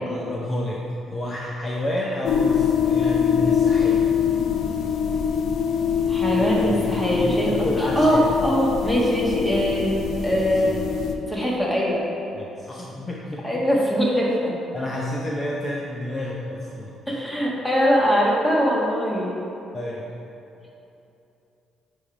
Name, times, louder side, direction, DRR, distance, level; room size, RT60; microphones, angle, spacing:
voice 1, 0.1-4.1 6.3-6.7 7.1-8.3 12.4-13.4 14.7-17.0 19.7-20.1, left 1 dB, 25° left, -3 dB, 0.7 m, -30 dB
sound 1, 2.2-11.1, left 7 dB, 60° left, 0.6 m, -23 dB
voice 2, 6.1-10.0 10.2-10.8 11.3-12.0 13.4-14.6 17.1-19.4, equal, 5° left, -4 dB, 1.4 m, -22 dB
9.1 x 3.4 x 4.8 m, 2.9 s
cardioid pair, 115°, 0 cm